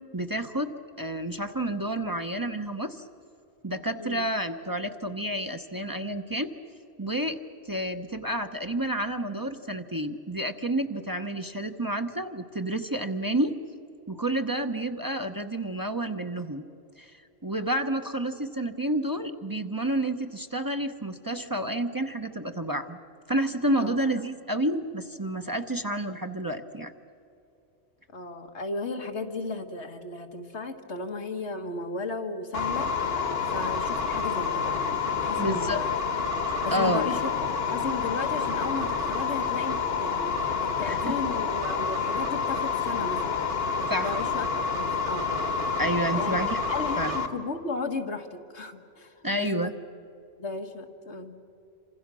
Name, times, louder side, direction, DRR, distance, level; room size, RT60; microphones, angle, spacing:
voice 1, 0.1-0.7 1.0-3.0 3.6-6.5 7.0-7.4 7.6-13.5 14.1-16.6 17.0-23.0 23.3-26.9 35.4-35.8 36.7-37.1 40.9-41.1 43.9-44.2 45.8-46.6 47.0-47.1 49.2-49.7, right 1 dB, 20° right, 6 dB, 0.9 m, -29 dB
voice 2, 28.1-35.9 36.6-43.5 43.8-44.5 44.7-45.3 46.1-46.4 46.7-49.7 50.4-51.4, left 3 dB, 85° left, 5 dB, 2.0 m, -35 dB
sound 1, 32.5-47.3, left 5 dB, 65° left, 1.7 m, -28 dB
28.0 x 26.0 x 6.2 m, 2.7 s
omnidirectional pair, 1.1 m